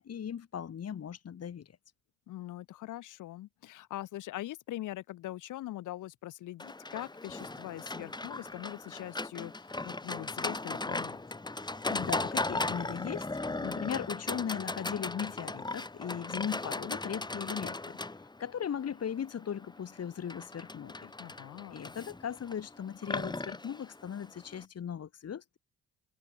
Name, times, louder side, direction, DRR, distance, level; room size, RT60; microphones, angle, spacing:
voice 1, 0.0-1.7 11.9-13.3 13.6-18.0 18.4-21.1 21.7-25.6, left 8 dB, 55° left, 5.4 m, -38 dB
voice 2, 2.3-11.2 21.2-21.8, left 15 dB, 85° left, 3.3 m, -42 dB
Livestock farm animals working animals, 6.6-24.6, left 2 dB, 15° left, 1.9 m, -38 dB
cardioid pair, 90°, 30 cm